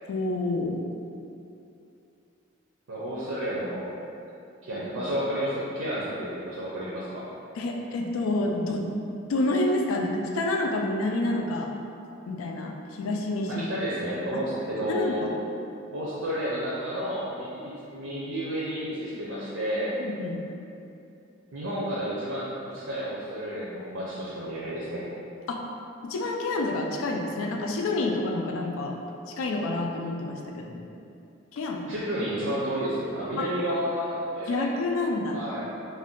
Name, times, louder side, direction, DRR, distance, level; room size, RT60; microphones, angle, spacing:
voice 1, 0.1-0.8 7.6-8.9 9.3-11.7 12.3-13.7 14.3-14.4 14.9-15.3 20.0-20.4 25.5-25.6 26.0-29.0 29.3-30.8 31.5-32.0 33.4-33.5 34.5-35.4, left 2 dB, 85° left, 1 dB, 0.3 m, -28 dB
voice 2, 2.9-3.9 4.6-7.3 13.5-15.2 15.9-20.0 21.5-25.0 31.9-34.8 35.3-35.7, equal, 80° right, -8 dB, 0.5 m, -31 dB
2.5 x 2.2 x 3.6 m, 2.7 s
head